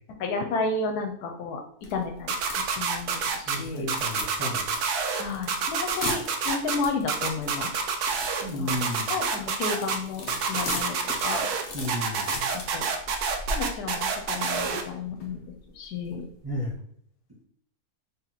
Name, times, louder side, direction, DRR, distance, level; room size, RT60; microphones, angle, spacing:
voice 1, 0.2-1.6 1.9-3.9 5.2-7.7 8.6-8.8 9.1-10.9 11.2-11.5 12.7-12.9 13.5-15.4 15.8-16.2, left 4 dB, 85° left, 3 dB, 1.2 m, -32 dB
sound 1, 1.8-16.7, left 2 dB, 55° left, 1.0 m, -39 dB
sound 2, 2.3-3.6 3.9-5.2 5.5-6.8 7.1-8.4 8.7-10.0 10.3-11.6 11.9-14.8, right 6 dB, 85° right, 1.2 m, -27 dB
voice 2, 3.5-4.7 8.4-9.1 11.7-12.3 16.4-16.7, left 1 dB, 20° right, -6 dB, 0.7 m, -32 dB
3.2 x 2.9 x 3.9 m, 0.67 s
omnidirectional pair, 1.6 m